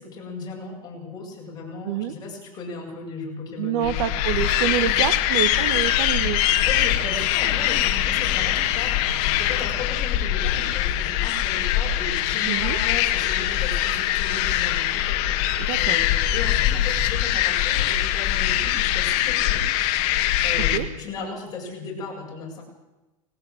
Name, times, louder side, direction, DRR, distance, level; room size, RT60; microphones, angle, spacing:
voice 1, 0.0-4.0 4.8-5.0 6.6-9.0 9.4-15.4 15.7-19.7 20.4-22.6, left 3 dB, 20° left, -2 dB, 7.6 m, -36 dB
voice 2, 3.6-6.4 12.5-12.8 15.7-16.0 20.7-20.9, right 11 dB, 55° right, 14 dB, 1.5 m, -26 dB
sound 1, 3.8-20.8, left 12 dB, 45° left, 1.8 m, -22 dB
19.0 x 18.0 x 8.0 m, 1.1 s
supercardioid pair, 150°, 19 cm